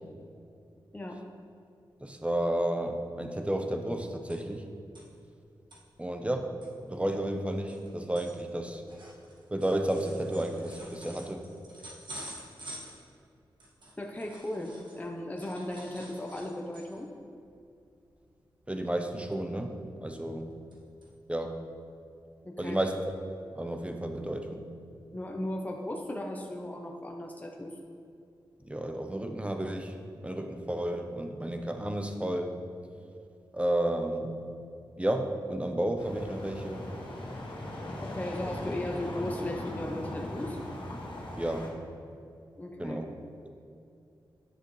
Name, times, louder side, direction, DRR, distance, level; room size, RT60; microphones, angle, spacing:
voice 1, 2.0-4.6 6.0-6.5 6.9-8.8 9.5-11.4 18.7-19.7 20.0-20.5 21.3-21.6 22.6-22.9 23.6-24.7 28.6-29.9 30.2-32.5 33.5-34.4 35.0-36.9 41.3-41.7 42.8-43.1 43.4-43.5, right 1 dB, 15° right, 5 dB, 0.9 m, -32 dB
sound 1, 4.3-4.6 4.9-5.0 5.5-5.8 6.3-6.4 6.6-15.1 15.4-17.1 17.5-17.7 18.0-18.2 19.3-19.9 20.3-20.7 21.0-21.1 21.7-21.8, right 1 dB, 60° right, 1.9 m, -49 dB
voice 2, 14.0-17.1 22.4-22.8 25.1-27.8 38.0-40.6 42.6-43.0, left 1 dB, 20° left, 1 dB, 0.9 m, -36 dB
sound 2, 36.0-41.7, left 1 dB, 75° left, 1.6 m, -39 dB
10.0 x 6.3 x 3.3 m, 2.5 s
cardioid pair, 45°, 9 cm